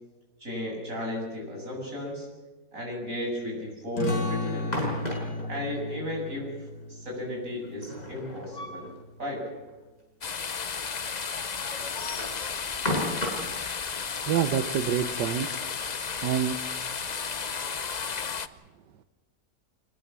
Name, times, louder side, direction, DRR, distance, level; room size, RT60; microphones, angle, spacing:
voice 1, 0.4-2.3 2.7-4.8 5.5-6.5 6.9-8.9 9.2-9.4, left 1 dB, 50° right, -1 dB, 8.5 m, -34 dB
sound 1, 4.0-9.2, left 2 dB, 75° left, 2.7 m, -35 dB
sound 2, 4.5-5.5 7.6-8.9 9.3-9.4 9.7-9.8 10.5-10.6 11.8-13.5, left 1 dB, 25° left, 6.3 m, -33 dB
sound 3, 10.2-18.5, left 6 dB, 45° left, 0.5 m, -33 dB
voice 2, 14.3-15.5 16.2-16.6, right 9 dB, 80° right, 9 dB, 1.6 m, -26 dB
24.5 x 21.0 x 7.5 m, 1.2 s
omnidirectional pair, 1.8 m